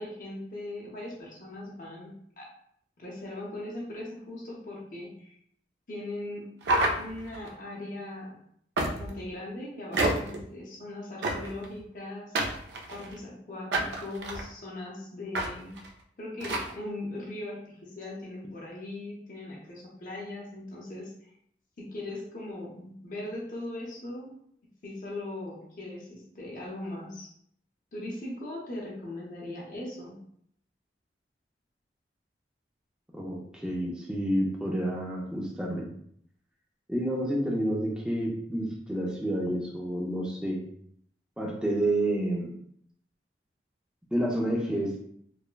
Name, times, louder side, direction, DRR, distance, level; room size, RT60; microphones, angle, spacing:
voice 1, 0.0-2.5 3.0-5.4 5.9-6.5 7.0-8.4 8.8-12.6 12.9-15.8 16.2-21.3 21.8-24.3 24.8-27.3 27.9-30.2, left 1 dB, 50° left, -3 dB, 0.6 m, -39 dB
sound 1, 6.6-7.5 8.8-9.2 9.9-10.4 11.2-11.7 12.4-13.2 13.7-14.4 15.3-15.5 15.8-15.9 16.4-16.7, right 2 dB, 85° right, 0.4 m, -29 dB
voice 2, 33.1-35.9 36.9-40.7 41.4-42.5 44.1-45.0, right 1 dB, 5° right, -2 dB, 0.3 m, -29 dB
3.2 x 2.0 x 2.2 m, 0.67 s
head